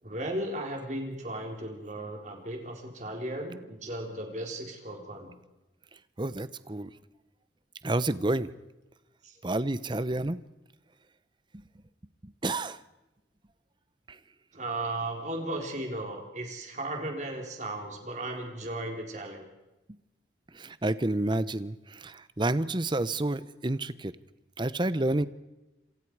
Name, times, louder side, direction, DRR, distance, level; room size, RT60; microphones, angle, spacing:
voice 1, 0.0-5.3 9.2-9.4 9.8-10.0 14.5-19.5, right 1 dB, 40° right, 2 dB, 4.0 m, -36 dB
voice 2, 6.2-6.9 7.8-8.5 9.4-10.4 12.2-12.8 14.1-14.2 20.5-24.1 24.6-25.2, right 2 dB, 25° right, 15 dB, 0.8 m, -29 dB
27.0 x 27.0 x 4.8 m, 0.99 s
head